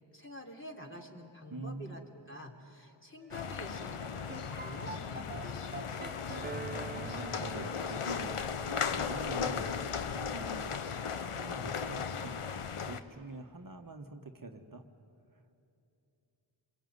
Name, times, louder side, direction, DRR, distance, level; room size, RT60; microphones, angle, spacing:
voice 1, 0.1-6.0, left 1 dB, 25° left, 1 dB, 3.4 m, -48 dB
voice 2, 1.5-2.0 6.9-9.8 10.3-10.8 11.2-14.8 15.3-15.5, right 3 dB, 40° right, 4 dB, 1.4 m, -46 dB
sound 1, 3.2-11.5, right 3 dB, 20° right, 0.7 m, -47 dB
sound 2, 3.3-13.0, left 6 dB, 85° left, 1.1 m, -36 dB
28.5 x 22.0 x 9.5 m, 2.7 s
wide cardioid pair, 55°, 50 cm